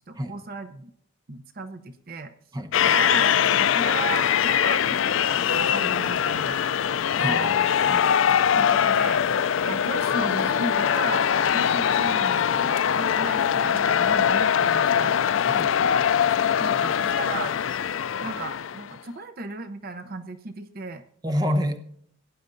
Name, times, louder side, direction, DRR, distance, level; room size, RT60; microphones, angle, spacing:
voice 1, 0.1-0.9 1.3-2.3 2.8-6.6 7.1-7.5 8.5-9.3 9.6-11.2 11.5-15.1 16.6-17.5 18.2-21.0, right 3 dB, 45° right, 9 dB, 0.7 m, -35 dB
sound 1, 2.7-19.0, left 8 dB, 70° left, 0.4 m, -22 dB
voice 2, 7.2-8.0 15.5-15.7 21.2-21.8, equal, 20° right, 7 dB, 0.9 m, -28 dB
17.5 x 10.0 x 2.6 m, 0.66 s
head